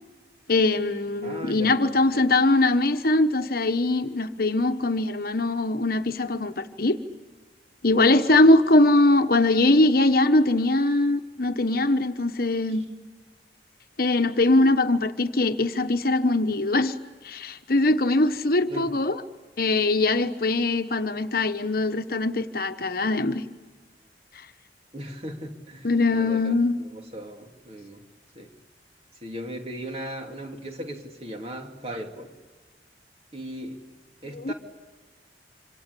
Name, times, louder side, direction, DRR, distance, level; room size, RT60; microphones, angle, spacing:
voice 1, 0.5-7.0 7.8-12.9 14.0-16.9 17.2-19.2 19.6-23.4 25.8-26.7 34.4-34.5, left 2 dB, 55° left, 1.1 m, -22 dB
voice 2, 1.2-2.2 18.7-18.9 24.9-28.0 28.3-28.5 29.2-32.3 33.3-33.8 34.2-34.5, equal, 35° right, 3.1 m, -38 dB
26.5 x 26.5 x 8.5 m
head